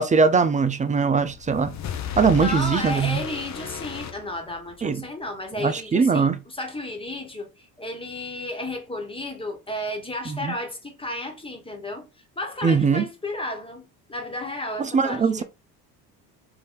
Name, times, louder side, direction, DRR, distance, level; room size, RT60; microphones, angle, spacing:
voice 1, 0.0-1.7 2.2-3.2 4.8-5.0 5.6-6.4 10.3-10.5 12.6-13.0 14.8-15.4, right 5 dB, 15° right, 0.4 m, -21 dB
sound 1, 1.2-4.9, left 9 dB, 35° left, 0.7 m, -34 dB
voice 2, 2.4-12.1 12.4-15.4, left 1 dB, 10° left, 1.4 m, -33 dB
3.4 x 2.7 x 3.6 m
hypercardioid pair, 65°, 48 cm